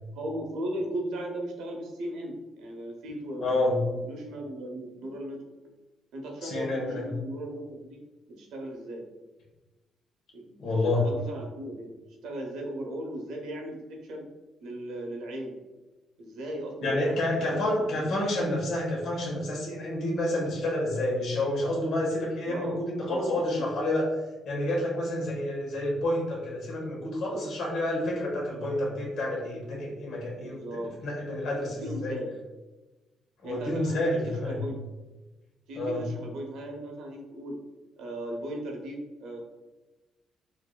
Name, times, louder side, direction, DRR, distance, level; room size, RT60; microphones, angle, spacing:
voice 1, 0.1-5.4 6.1-8.0 8.3-9.0 10.3-11.9 12.2-14.3 14.6-15.5 16.2-18.2 22.5-22.8 23.1-23.2 23.5-23.6 30.4-30.9 31.7-32.3 33.4-34.8 35.7-37.6 38.0-39.4, right 1 dB, 85° right, 1 dB, 0.8 m, -37 dB
voice 2, 3.4-3.8 6.4-7.1 10.6-11.1 16.8-24.1 24.4-32.2 33.4-34.7 35.8-36.0, left 1 dB, 70° left, -4 dB, 1.3 m, -29 dB
4.5 x 2.7 x 2.2 m, 1.1 s
cardioid pair, 90°, 0 cm